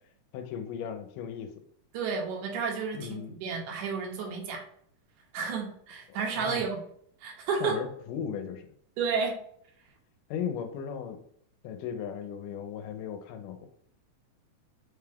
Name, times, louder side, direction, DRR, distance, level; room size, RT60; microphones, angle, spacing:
voice 1, 0.3-1.5 2.9-3.4 6.1-6.6 7.6-8.7 10.3-11.2 11.6-13.7, left 8 dB, 85° left, 7 dB, 2.1 m, -37 dB
voice 2, 1.9-4.6 5.3-6.8 7.2-7.8 9.0-9.4, right 5 dB, 75° right, 1 dB, 2.1 m, -31 dB
5.4 x 2.3 x 3.4 m, 0.65 s
omnidirectional pair, 3.7 m